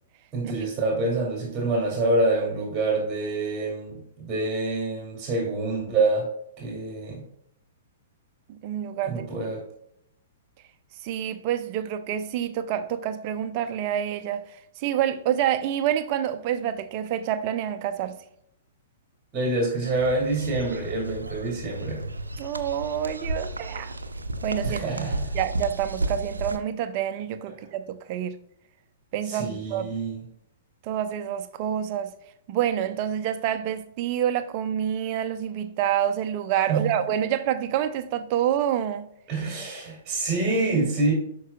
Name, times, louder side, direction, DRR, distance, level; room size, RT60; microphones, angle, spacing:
voice 1, 0.3-6.3 6.6-7.2 9.1-9.6 19.3-22.0 24.6-25.4 29.2-30.2 36.7-36.9 39.3-41.1, right 2 dB, 20° right, 2.5 m, -26 dB
voice 2, 8.5-9.3 11.0-18.2 22.4-23.9 24.4-25.1 25.3-28.4 29.1-29.9 30.8-32.1 32.5-39.1, right 10 dB, 40° right, 0.6 m, -27 dB
sound 1, 19.8-26.6, right 1 dB, 80° right, 0.6 m, -33 dB
12.0 x 4.7 x 2.3 m
figure-of-eight pair, 110°, 0 cm